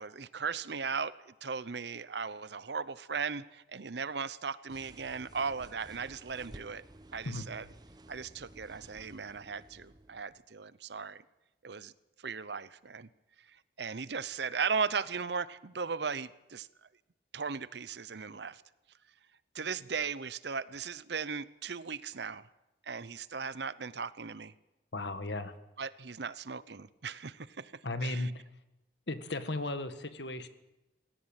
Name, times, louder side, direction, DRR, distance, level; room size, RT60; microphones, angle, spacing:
voice 1, 0.0-6.8 7.1-7.6 8.1-11.2 11.6-11.9 12.2-13.1 13.8-16.7 17.3-18.6 19.5-22.5 22.8-24.5 25.8-28.3, right 5 dB, 70° right, 18 dB, 0.8 m, -37 dB
sound 1, 4.7-10.4, right 1 dB, 20° right, 1.0 m, -54 dB
voice 2, 24.9-25.5 27.8-28.4 29.1-30.5, left 2 dB, 75° left, 10 dB, 1.7 m, -35 dB
19.0 x 17.0 x 9.0 m, 0.98 s
head